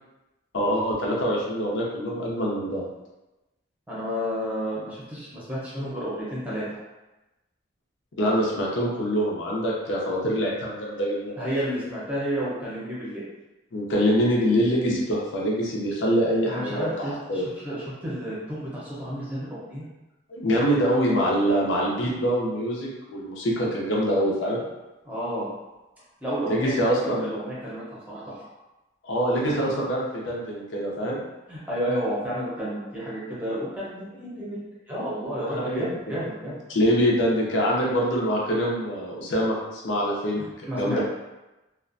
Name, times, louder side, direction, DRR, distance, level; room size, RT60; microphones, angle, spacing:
voice 1, 0.5-2.9 8.2-11.4 13.7-17.5 20.3-24.6 26.4-27.3 29.0-31.2 35.5-35.9 36.7-41.0, equal, 80° left, -3 dB, 0.6 m, -24 dB
voice 2, 3.9-6.8 11.4-13.3 16.5-19.9 25.0-25.5 26.2-28.5 31.5-34.6 34.9-36.6 40.4-41.0, equal, 10° right, -9 dB, 0.7 m, -31 dB
2.4 x 2.1 x 2.5 m, 1.0 s
head